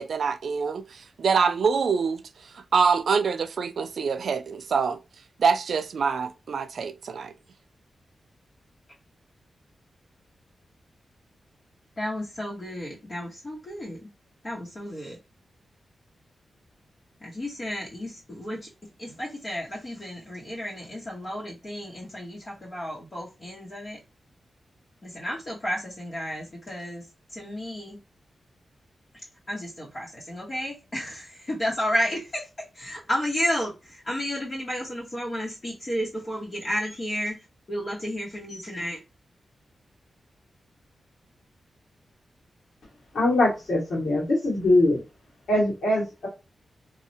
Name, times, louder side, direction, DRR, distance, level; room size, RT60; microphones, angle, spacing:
voice 1, 0.0-2.2 2.7-5.0 5.4-7.3, right 5 dB, 65° right, 0.3 m, -25 dB
voice 2, 12.0-14.0 14.4-15.2 17.2-18.7 19.0-24.0 25.0-28.0 29.5-32.5 32.7-39.0, equal, 35° left, 0.8 m, -32 dB
voice 3, 43.1-45.0 45.5-46.3, left 1 dB, 80° left, 1.4 m, -22 dB
3.1 x 2.1 x 2.6 m
wide cardioid pair, 145°, 0 cm